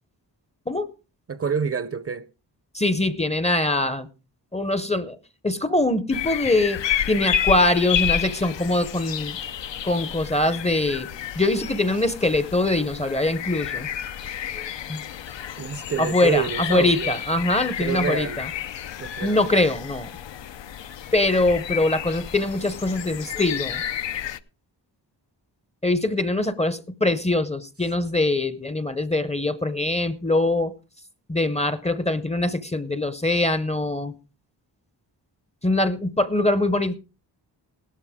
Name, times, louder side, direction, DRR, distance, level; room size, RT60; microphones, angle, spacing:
voice 1, 1.3-2.3 15.6-17.2 17.8-18.4 19.0-19.5, right 6 dB, 35° right, 0.6 m, -27 dB
voice 2, 2.7-4.1 4.5-5.2 5.4-6.8 7.1-9.4 9.8-11.1 11.4-13.9 14.5-15.0 16.0-18.5 19.2-20.1 21.1-23.8 25.8-30.7 31.3-34.1 35.6-37.0, left 2 dB, 15° left, 0.6 m, -23 dB
sound 1, 6.1-24.4, left 10 dB, 85° left, 0.7 m, -31 dB
16.5 x 12.0 x 3.5 m
wide cardioid pair, 180°, 42 cm